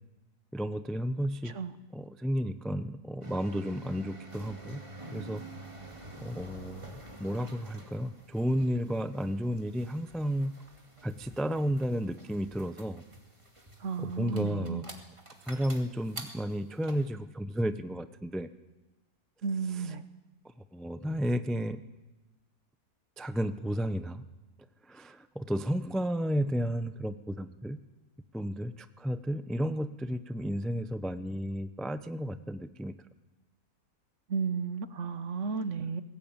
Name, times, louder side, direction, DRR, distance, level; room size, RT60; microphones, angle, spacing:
voice 1, 0.5-1.6 1.9-4.8 5.1-5.4 6.2-6.9 7.2-10.5 11.0-13.0 14.0-14.9 15.5-18.5 19.7-19.9 20.7-21.8 23.2-24.2 24.9-27.8 28.3-32.9, equal, ahead, 11 dB, 0.3 m, -32 dB
sound 1, 3.2-17.1, right 2 dB, 20° right, 2.3 m, -48 dB
voice 2, 13.8-14.8 19.4-20.0 34.3-36.0, right 5 dB, 55° right, 12 dB, 1.3 m, -33 dB
21.5 x 18.0 x 8.9 m, 1.1 s
omnidirectional pair, 1.7 m